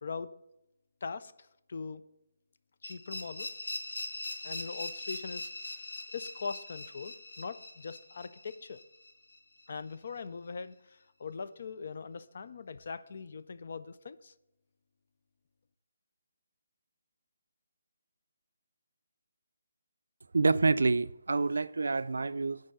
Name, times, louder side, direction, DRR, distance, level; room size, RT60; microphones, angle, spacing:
voice 1, 0.0-0.3 1.0-2.0 2.8-3.5 4.4-5.5 6.1-8.8 9.7-14.3, left 5 dB, 40° left, 0.3 m, -41 dB
sound 1, 2.8-9.6, left 2 dB, 85° left, 1.4 m, -41 dB
voice 2, 20.3-22.6, right 3 dB, 90° right, 0.3 m, -27 dB
6.7 x 4.7 x 6.0 m
hypercardioid pair, 180°, 0 cm